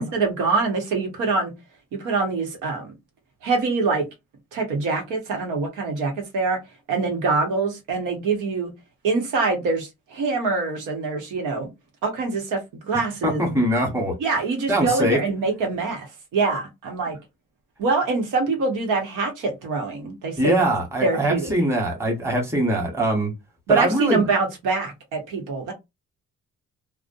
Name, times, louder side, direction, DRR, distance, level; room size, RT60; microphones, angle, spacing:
voice 1, 0.0-1.5 1.9-2.9 3.4-4.0 4.5-6.6 6.9-8.7 9.0-11.7 12.0-13.4 14.2-17.2 17.8-20.7 21.0-21.5 23.7-25.7, right 4 dB, 85° right, 1.0 m, -24 dB
voice 2, 13.2-14.2 14.7-15.2 20.4-23.3 23.7-24.2, right 1 dB, 10° right, 1.2 m, -22 dB
2.5 x 2.1 x 2.5 m
cardioid pair, 90°, 30 cm